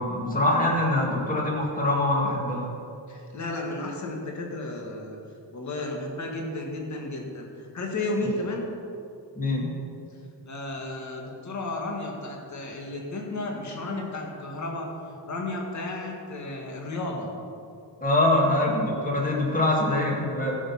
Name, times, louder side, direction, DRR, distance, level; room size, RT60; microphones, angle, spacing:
voice 1, 0.0-2.7 9.4-9.7 18.0-20.6, left 1 dB, 20° left, -2 dB, 2.1 m, -24 dB
voice 2, 3.1-5.2 5.5-8.7 10.1-14.9 15.2-17.3, left 2 dB, 40° left, 0 dB, 1.8 m, -33 dB
15.0 x 6.5 x 5.8 m, 2.6 s
wide cardioid pair, 165°, 42 cm